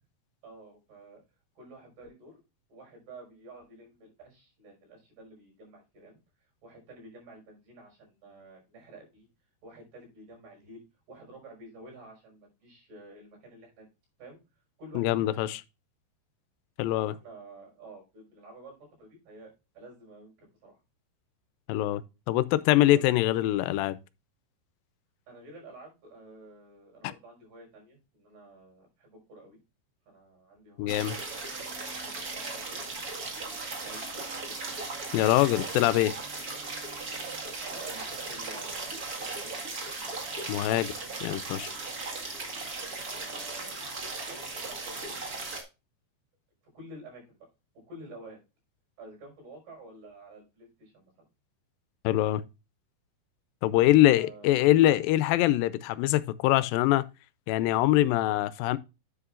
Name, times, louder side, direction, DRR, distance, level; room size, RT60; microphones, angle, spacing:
voice 1, 0.4-1.2 1.6-2.4 2.7-6.2 6.6-9.3 9.6-13.9 14.2-14.4 14.8-15.6 16.9-20.8 22.9-23.0 25.3-29.6 30.1-31.3 32.0-32.9 33.8-34.8 35.9-36.3 37.4-39.5 43.2-43.8 44.3-45.2 46.7-47.4 47.9-48.4 49.0-51.1 53.7-54.6, right 2 dB, 75° right, 7.2 m, -50 dB
voice 2, 15.0-15.6 16.8-17.1 21.7-22.0 22.3-24.0 27.0-27.1 30.8-31.2 35.1-36.1 40.5-40.9 41.2-41.7 52.0-52.4 53.6-57.0 57.5-58.8, left 15 dB, 80° left, 2.2 m, -23 dB
sound 1, 30.9-45.6, right 3 dB, 45° right, 1.1 m, -37 dB
9.8 x 8.1 x 2.4 m
omnidirectional pair, 4.5 m